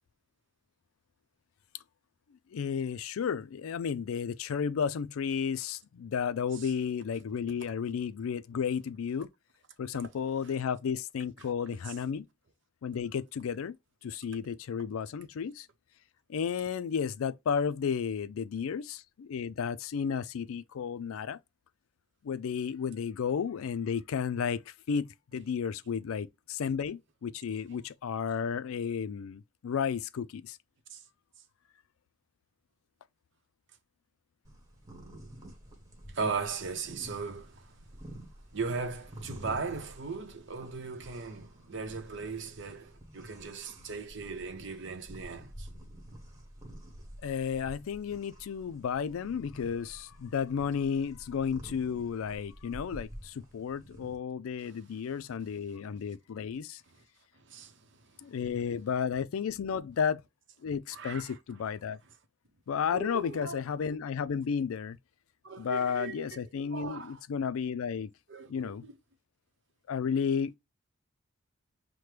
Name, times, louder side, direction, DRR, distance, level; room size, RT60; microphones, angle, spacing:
voice 1, 2.5-9.3 9.8-12.3 12.8-13.8 14.0-15.7 16.3-21.4 22.2-30.6 47.2-56.8 58.2-60.2 60.6-62.0 62.7-65.0 65.6-68.1 68.5-68.8 69.9-70.6, left 7 dB, 80° left, 0.4 m, -33 dB
sound 1, 34.4-54.1, equal, 15° right, 1.3 m, -49 dB
voice 2, 36.1-37.5 38.5-45.7 57.5-57.7 60.9-61.3 62.9-63.6 65.4-66.4 66.7-67.2 68.3-68.9, right 4 dB, 60° right, 0.7 m, -38 dB
5.8 x 2.1 x 3.2 m
head